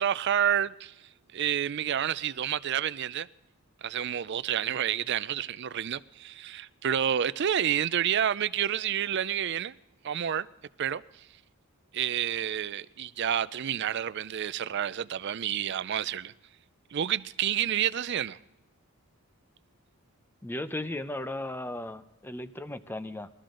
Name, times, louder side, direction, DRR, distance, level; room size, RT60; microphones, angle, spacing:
voice 1, 0.0-3.3 3.8-9.7 10.0-10.5 10.8-11.3 11.9-16.3 16.9-18.4, right 9 dB, 50° right, 0.4 m, -29 dB
voice 2, 20.4-23.3, left 1 dB, 10° left, 0.6 m, -36 dB
21.0 x 13.5 x 3.8 m
head